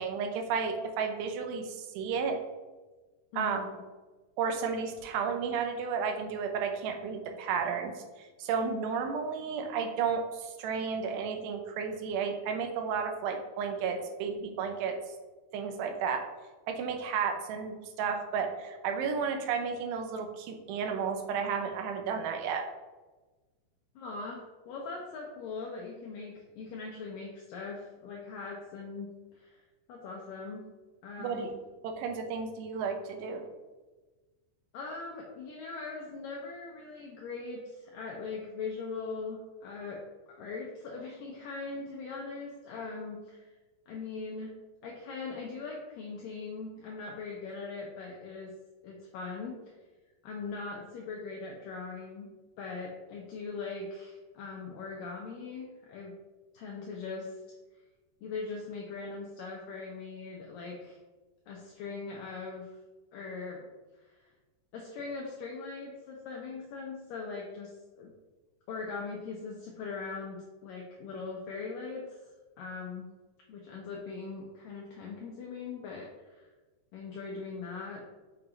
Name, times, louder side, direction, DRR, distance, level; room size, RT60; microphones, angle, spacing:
voice 1, 0.0-2.4 3.4-3.6 4.4-15.0 15.5-16.2 16.7-22.7 31.2-31.5 31.8-33.4, right 6 dB, 85° right, 4 dB, 2.8 m, -32 dB
voice 2, 3.3-3.8 24.0-29.6 29.9-30.7 31.0-31.5 34.7-43.5 43.9-44.5 44.8-48.5 48.8-49.8 50.2-52.3 52.6-56.1 56.5-57.4 58.2-61.0 61.5-62.7 63.1-63.6 64.0-64.1 64.7-68.1 68.7-72.2 72.6-73.1 73.5-76.5 76.9-78.0, left 4 dB, 90° left, -1 dB, 1.9 m, -40 dB
7.1 x 5.8 x 2.5 m, 1.2 s
omnidirectional pair, 4.8 m